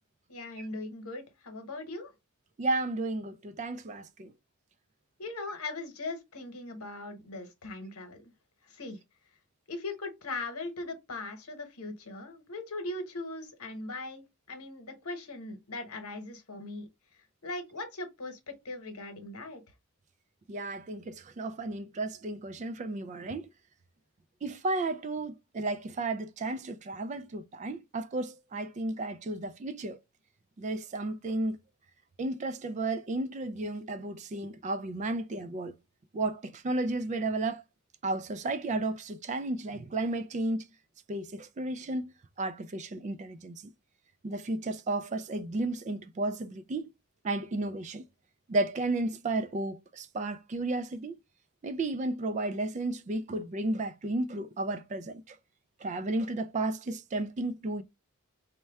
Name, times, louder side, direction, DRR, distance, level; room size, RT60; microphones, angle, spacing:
voice 1, 0.3-2.1 5.2-8.3 8.7-9.0 9.7-16.9 17.4-19.6, left 2 dB, 75° left, 1.0 m, -39 dB
voice 2, 2.6-4.3 20.5-23.5 24.4-30.0 30.6-31.6 32.2-35.7 36.1-37.6 38.0-40.7 41.1-43.6 44.2-46.9 47.2-48.0 48.5-51.2 51.6-55.4 55.8-57.8, right 2 dB, 30° right, 0.3 m, -33 dB
4.2 x 2.2 x 3.3 m
head